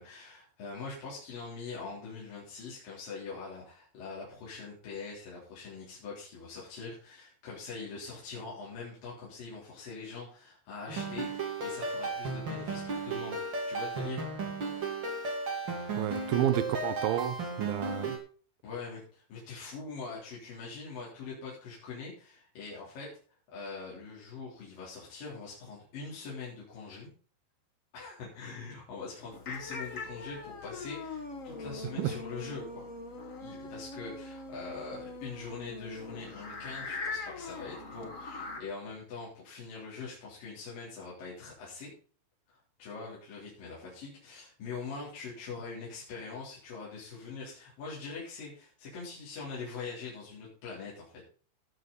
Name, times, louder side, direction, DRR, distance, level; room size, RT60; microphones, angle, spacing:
voice 1, 0.0-14.3 18.6-23.1 23.5-27.1 27.9-32.9 33.4-41.9 42.8-51.3, left 4 dB, 70° left, 5.3 m, -43 dB
sound 1, 10.9-18.2, right 3 dB, 35° right, 2.6 m, -35 dB
voice 2, 16.0-18.2 32.0-32.1, right 11 dB, 80° right, 2.6 m, -30 dB
sound 2, 29.3-38.6, left 3 dB, 85° left, 0.7 m, -41 dB
17.5 x 6.8 x 4.1 m
omnidirectional pair, 4.2 m